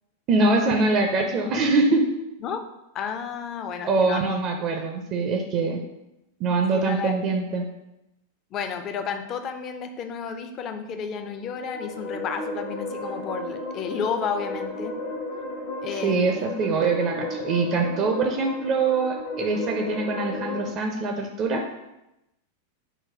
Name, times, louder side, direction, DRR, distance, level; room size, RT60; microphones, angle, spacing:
voice 1, 0.3-2.0 3.8-5.8 6.4-7.7 15.9-21.6, right 3 dB, 35° right, 3 dB, 0.4 m, -23 dB
voice 2, 2.9-4.4 6.7-7.2 8.5-14.9 15.8-16.5, left 6 dB, 35° left, 6 dB, 0.4 m, -32 dB
sound 1, 11.3-20.7, left 2 dB, 70° left, 0.8 m, -34 dB
3.9 x 2.2 x 4.4 m, 0.90 s
figure-of-eight pair, 90°, 0 cm